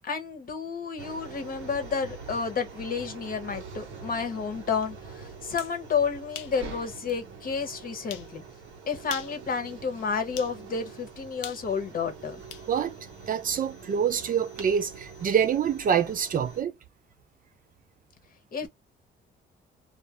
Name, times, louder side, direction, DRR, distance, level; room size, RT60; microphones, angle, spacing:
voice 1, 0.0-8.4 8.9-12.4 18.5-18.7, left 5 dB, 45° left, 0.8 m, -31 dB
sound 1, 1.0-16.6, right 5 dB, 75° right, 0.8 m, -44 dB
sound 2, 5.6-5.8 6.3-6.6 7.1-7.2 8.1-8.3 9.0-9.4 10.4-10.6 11.4-12.7, left 10 dB, 85° left, 0.5 m, -41 dB
voice 2, 13.3-16.7, right 8 dB, 45° right, 0.5 m, -26 dB
2.3 x 2.1 x 2.8 m
cardioid pair, 90°, 20 cm